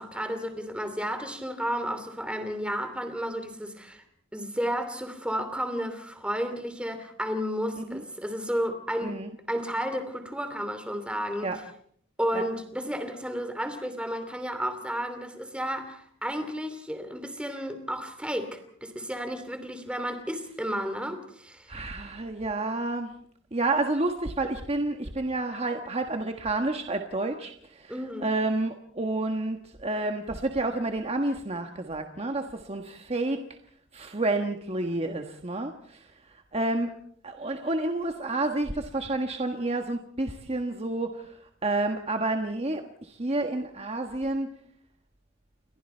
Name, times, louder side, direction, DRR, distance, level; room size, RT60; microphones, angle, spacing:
voice 1, 0.0-4.0 4.3-9.2 9.5-11.5 12.2-21.7 27.9-28.2, equal, 5° right, 8 dB, 2.9 m, -32 dB
voice 2, 9.0-9.3 11.4-11.6 12.3-12.5 21.7-23.1 23.5-33.4 33.9-36.9 37.2-44.5, right 2 dB, 30° right, 5 dB, 1.4 m, -30 dB
30.0 x 23.0 x 4.5 m, 0.63 s
head